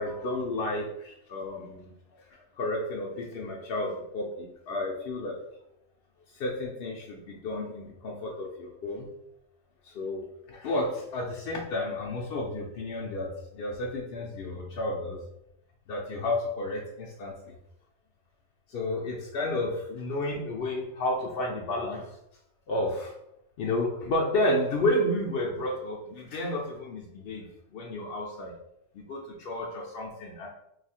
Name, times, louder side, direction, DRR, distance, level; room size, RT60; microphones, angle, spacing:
voice 1, 0.0-1.9 2.3-5.4 6.3-9.1 9.8-15.2 15.9-17.6 18.7-22.2 22.7-23.1 23.6-27.5 27.7-28.5 28.9-30.5, left 1 dB, 65° left, -1 dB, 0.7 m, -31 dB
2.7 x 2.4 x 4.1 m, 0.81 s
omnidirectional pair, 1.2 m